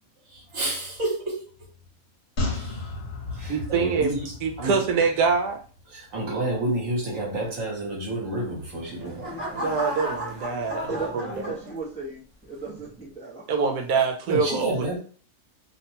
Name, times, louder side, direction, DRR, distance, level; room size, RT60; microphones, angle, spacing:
voice 1, 0.3-1.4 2.5-2.9 3.3-4.9 5.9-9.2 14.3-15.0, right 1 dB, 60° right, 1.3 m, -30 dB
sound 1, 2.4-5.8 6.1-6.2, left 2 dB, 50° left, 1.1 m, -33 dB
voice 2, 3.5-5.6 9.5-10.9 13.5-14.7, right 5 dB, 80° right, 1.1 m, -24 dB
sound 2, 8.5-12.1 12.6-13.0, right 1 dB, 15° right, 1.0 m, -34 dB
voice 3, 10.9-13.5, right 3 dB, 10° left, 0.4 m, -35 dB
2.8 x 2.2 x 2.8 m
omnidirectional pair, 1.6 m